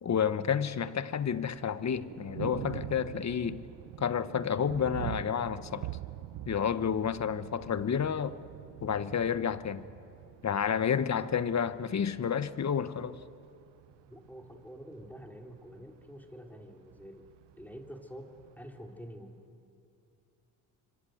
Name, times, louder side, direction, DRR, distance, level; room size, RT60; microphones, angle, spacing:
voice 1, 0.0-3.6 4.0-5.9 6.4-8.4 8.8-9.9 10.4-13.2, left 7 dB, 40° left, 1.3 m, -30 dB
Thunder, 1.2-19.1, right 16 dB, 80° right, 0.8 m, -46 dB
voice 2, 14.0-17.3 17.6-19.4, equal, 5° left, 3.9 m, -47 dB
29.0 x 25.0 x 8.0 m
supercardioid pair, 65°, 40 cm